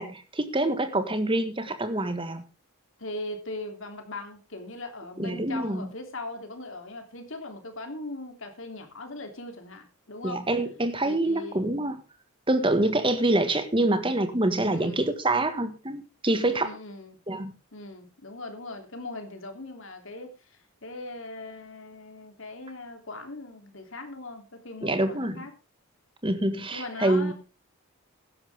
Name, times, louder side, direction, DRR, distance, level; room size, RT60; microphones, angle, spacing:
voice 1, 0.0-2.4 5.2-5.9 10.2-12.0 12.5-16.7 17.3-17.5 24.8-25.4 26.2-27.3, right 1 dB, 25° right, 9 dB, 1.7 m, -26 dB
voice 2, 3.0-10.4 11.0-11.6 14.7-15.2 16.3-17.2 17.7-25.5 26.7-27.3, left 2 dB, 60° left, 5 dB, 3.1 m, -40 dB
16.0 x 12.0 x 3.6 m, 0.30 s
head